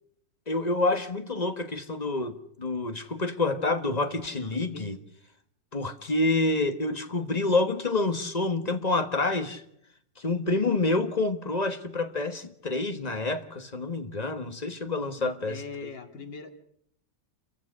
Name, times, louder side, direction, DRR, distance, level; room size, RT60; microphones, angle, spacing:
voice 1, 0.5-5.0 5.7-9.6 10.2-15.9, left 2 dB, 25° left, 1.3 m, -28 dB
voice 2, 4.3-4.9 15.2-16.5, left 5 dB, 90° left, 2.8 m, -41 dB
28.5 x 15.5 x 6.4 m
omnidirectional pair, 1.9 m